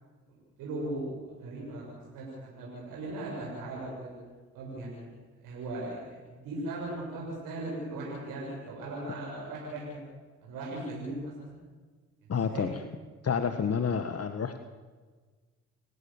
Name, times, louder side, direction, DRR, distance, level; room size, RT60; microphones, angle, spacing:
voice 1, 0.6-4.2 4.5-5.1 5.4-10.0 10.4-11.5 12.5-12.8, right 2 dB, 85° right, -3 dB, 7.4 m, -38 dB
voice 2, 12.3-12.7 13.2-14.6, left 6 dB, 45° left, 8 dB, 1.7 m, -29 dB
29.5 x 17.0 x 7.4 m, 1.4 s
supercardioid pair, 55°, 32 cm